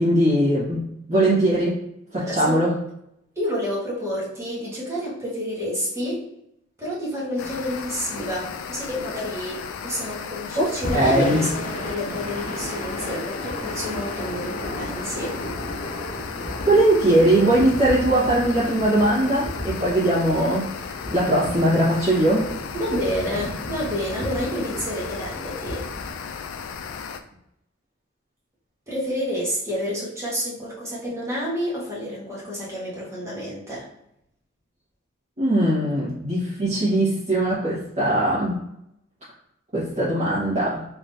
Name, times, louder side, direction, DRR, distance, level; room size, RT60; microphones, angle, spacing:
voice 1, 0.0-1.8 2.1-2.8 10.5-11.5 16.6-22.5 35.4-38.7 39.7-40.9, right 1 dB, 40° right, -12 dB, 1.2 m, -20 dB
voice 2, 2.3-2.6 3.3-6.3 6.8-15.4 22.7-26.1 28.9-33.9, equal, 15° right, -6 dB, 1.3 m, -29 dB
sound 1, 7.4-27.2, left 6 dB, 75° left, 0.3 m, -35 dB
Thunder / Rain, 10.8-26.9, left 1 dB, 40° left, 0.7 m, -34 dB
3.6 x 2.9 x 2.6 m, 0.79 s
head